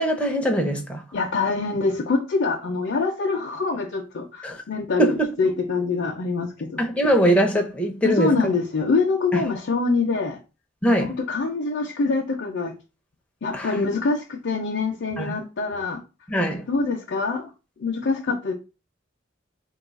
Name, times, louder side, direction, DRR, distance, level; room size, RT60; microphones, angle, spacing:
voice 1, 0.0-1.0 4.4-4.6 5.0-5.3 6.8-8.3 9.3-9.4 10.8-11.1 13.5-13.7 15.2-15.4 16.3-16.7, right 1 dB, 5° left, 0.5 m, -22 dB
voice 2, 1.1-6.8 8.0-10.4 11.0-12.7 13.4-16.0 16.7-17.5 17.8-18.5, left 4 dB, 65° left, 0.5 m, -25 dB
2.7 x 2.3 x 3.9 m
head